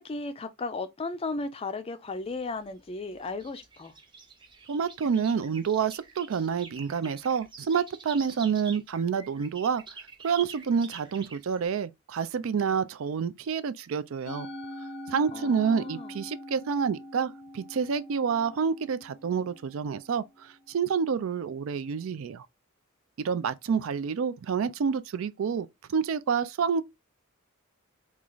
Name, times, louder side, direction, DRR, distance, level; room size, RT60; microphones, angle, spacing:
voice 1, 0.0-3.9 15.3-16.1, left 3 dB, 25° left, 0.4 m, -35 dB
sound 1, 2.1-11.6, right 5 dB, 20° right, 0.6 m, -47 dB
voice 2, 4.7-9.8 10.2-14.5 15.1-22.5 23.2-26.8, right 6 dB, 70° right, 0.4 m, -28 dB
Musical instrument, 14.3-20.7, left 1 dB, 85° left, 0.6 m, -43 dB
3.1 x 2.4 x 3.8 m
head